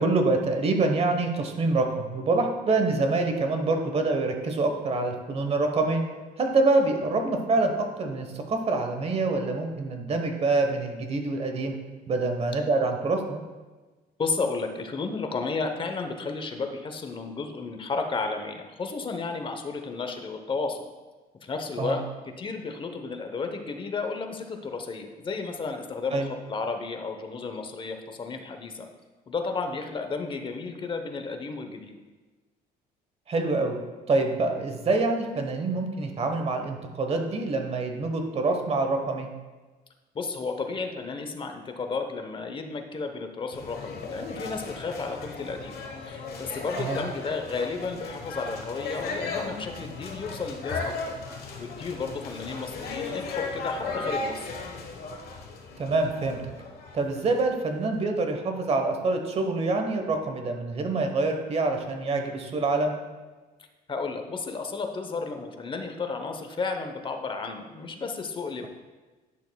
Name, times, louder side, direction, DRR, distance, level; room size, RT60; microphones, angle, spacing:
voice 1, 0.0-6.0 6.4-11.7 12.1-13.4 21.8-22.0 26.1-26.3 33.3-33.8 34.1-39.3 46.8-47.0 55.8-56.4 56.9-62.9, right 3 dB, 35° right, 5 dB, 1.1 m, -26 dB
voice 2, 14.2-20.8 21.4-22.0 22.4-28.9 29.3-31.9 40.1-45.8 46.1-51.1 51.6-54.5 63.9-68.7, left 4 dB, 30° left, 5 dB, 0.9 m, -33 dB
sound 1, 43.5-57.5, left 3 dB, 65° left, 1.2 m, -36 dB
10.5 x 6.4 x 2.3 m, 1.3 s
cardioid pair, 110°, 17 cm